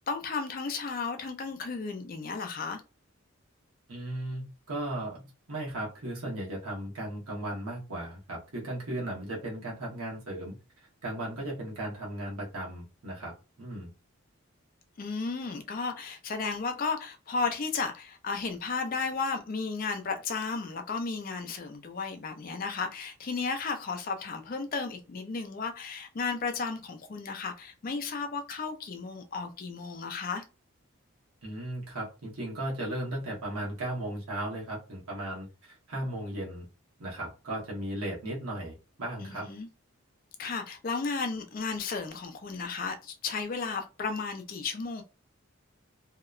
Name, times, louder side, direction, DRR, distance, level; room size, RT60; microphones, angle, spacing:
voice 1, 0.1-2.8 15.0-30.4 39.2-39.7 40.4-45.0, left 4 dB, 40° left, 0.4 m, -34 dB
voice 2, 3.9-10.5 11.0-13.9 31.4-36.6 37.0-39.5, right 1 dB, 90° right, 1.0 m, -36 dB
2.8 x 2.0 x 2.3 m
head